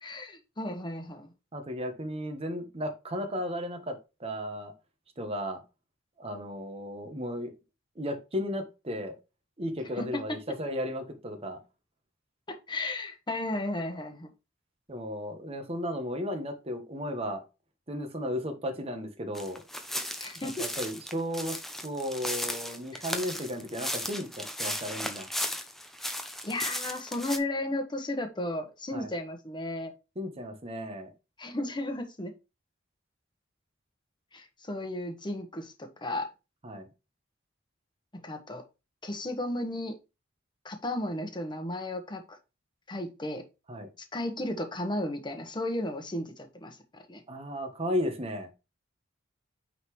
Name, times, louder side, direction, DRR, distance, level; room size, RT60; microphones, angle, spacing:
voice 1, 0.0-1.3 10.0-10.2 12.5-14.3 20.2-20.6 22.9-23.0 26.4-29.9 31.4-32.3 34.3-36.3 38.2-38.6 39.0-39.9 40.6-42.4 42.9-43.4 44.1-47.2, left 1 dB, 25° left, 6 dB, 1.2 m, -34 dB
voice 2, 1.5-4.7 5.2-5.6 6.2-7.5 8.0-9.1 9.6-11.6 14.9-17.4 17.9-19.6 20.6-21.6 21.8-25.3 28.9-29.1 30.2-31.1 36.6-36.9 43.7-43.9 47.3-48.5, equal, 30° right, 5 dB, 1.2 m, -34 dB
sound 1, 19.3-27.4, equal, ahead, 0.7 m, -35 dB
8.8 x 3.9 x 3.2 m, 0.27 s
head